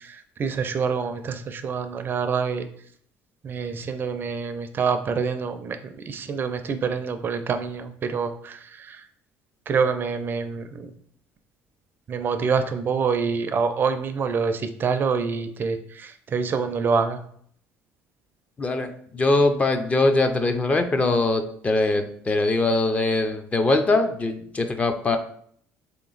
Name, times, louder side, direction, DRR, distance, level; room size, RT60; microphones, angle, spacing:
voice 1, 0.4-2.6 3.4-5.8 6.1-8.3 9.7-10.6 12.1-15.8 16.3-17.2, right 5 dB, 40° right, 8 dB, 0.4 m, -25 dB
voice 2, 18.6-25.2, left 2 dB, 25° left, 7 dB, 0.4 m, -22 dB
3.3 x 2.9 x 3.9 m, 0.62 s
cardioid pair, 100°, 5 cm